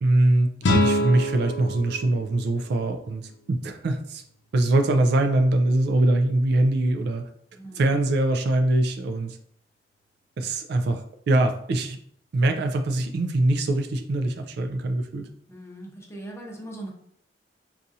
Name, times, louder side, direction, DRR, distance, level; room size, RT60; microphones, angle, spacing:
voice 1, 0.0-4.2 4.5-7.2 7.8-9.4 10.4-11.0 11.3-12.0 12.3-15.3, right 2 dB, 65° right, 6 dB, 0.4 m, -23 dB
sound 1, 0.6-3.6, left 1 dB, 85° left, 0.5 m, -26 dB
voice 2, 7.5-7.9 15.5-16.9, right 1 dB, 15° left, -1 dB, 0.7 m, -40 dB
4.0 x 2.4 x 2.6 m, 0.67 s
head